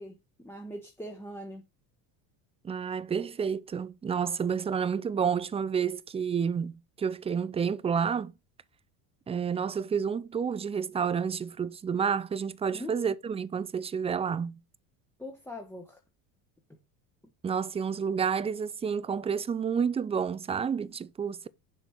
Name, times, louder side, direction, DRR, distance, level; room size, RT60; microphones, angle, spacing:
voice 1, 0.0-1.6 12.7-13.2 15.2-16.0, equal, 5° left, 1.1 m, -42 dB
voice 2, 2.6-8.3 9.3-14.6 17.4-21.5, right 6 dB, 15° right, 0.4 m, -30 dB
6.8 x 4.2 x 4.5 m
supercardioid pair, 95°, 45 cm